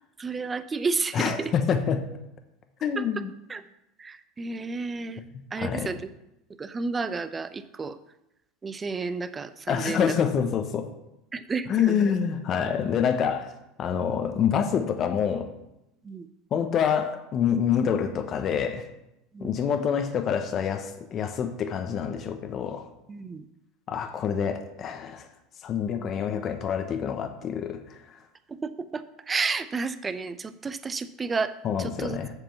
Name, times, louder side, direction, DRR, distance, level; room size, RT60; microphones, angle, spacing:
voice 1, 0.2-1.5 3.0-3.2 3.5-3.6 4.0-5.2 5.5-6.1 6.6-8.0 8.6-10.1 11.3-12.1 16.0-16.3 19.3-19.5 23.1-23.4 28.5-31.5 31.8-32.2, right 4 dB, 25° right, 12 dB, 0.7 m, -31 dB
voice 2, 1.1-2.0 2.8-3.3 5.6-5.9 9.7-10.9 11.7-13.5 13.8-15.5 16.5-18.8 19.4-22.9 23.9-25.3 25.6-28.0 31.6-32.3, left 7 dB, 45° left, 7 dB, 1.0 m, -26 dB
7.6 x 5.2 x 7.1 m, 0.87 s
hypercardioid pair, 90°, 0 cm